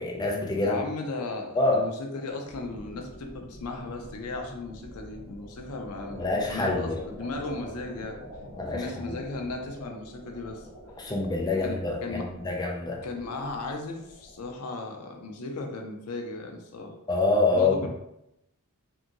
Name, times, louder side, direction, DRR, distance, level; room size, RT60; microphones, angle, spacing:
voice 1, 0.0-0.8 1.5-1.8 6.2-7.0 8.6-9.2 11.0-13.0 17.1-17.9, left 3 dB, 20° left, -1 dB, 0.4 m, -26 dB
voice 2, 0.6-8.2 8.7-10.6 11.6-12.3 13.0-17.0 17.5-17.9, left 3 dB, 85° left, 3 dB, 0.5 m, -36 dB
sound 1, 2.4-14.5, equal, 10° right, 1.3 m, -46 dB
2.8 x 2.6 x 2.5 m, 0.84 s
head